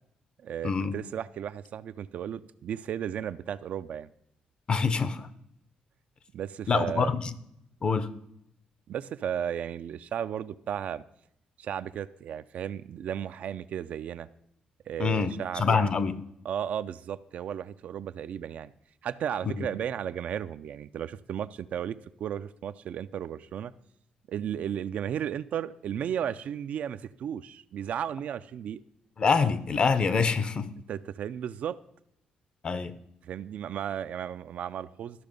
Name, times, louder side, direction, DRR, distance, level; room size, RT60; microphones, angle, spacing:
voice 1, 0.4-4.1 6.3-7.1 8.9-11.0 11.6-14.3 14.9-16.0 16.4-18.7 19.0-23.7 24.3-28.8 30.9-31.8 33.2-35.2, right 9 dB, 65° right, 0.4 m, -34 dB
voice 2, 4.7-5.3 6.7-7.3 7.8-8.1 15.0-16.2 19.4-19.7 29.2-30.7 32.6-32.9, left 5 dB, 40° left, 0.6 m, -26 dB
13.0 x 5.8 x 5.2 m
cardioid pair, 110°, 3 cm